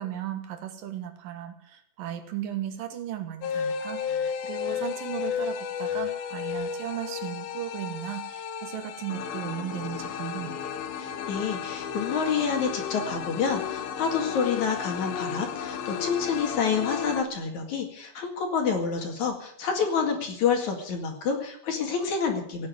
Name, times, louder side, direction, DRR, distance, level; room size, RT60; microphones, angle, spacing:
voice 1, 0.0-4.0 4.4-10.6, right 10 dB, 70° right, 7 dB, 3.0 m, -36 dB
sound 1, 3.4-17.2, left 8 dB, 80° left, 2.9 m, -33 dB
voice 2, 11.0-22.7, left 6 dB, 55° left, 3 dB, 3.2 m, -28 dB
17.5 x 7.5 x 9.3 m, 0.71 s
omnidirectional pair, 4.2 m